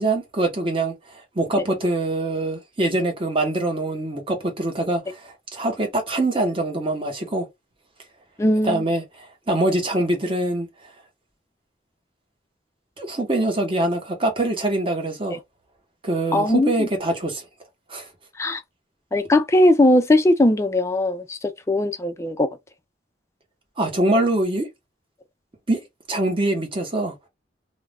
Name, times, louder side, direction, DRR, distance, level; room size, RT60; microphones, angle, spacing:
voice 1, 0.0-7.5 8.6-10.7 13.0-15.4 16.0-17.4 17.9-18.1 23.8-24.7 25.7-25.8 26.1-27.1, right 2 dB, 30° right, 0.8 m, -24 dB
voice 2, 8.4-8.8 15.3-15.4 16.3-16.9 18.4-18.6 19.1-22.5, left 1 dB, 15° left, 0.3 m, -19 dB
2.3 x 2.0 x 3.4 m
head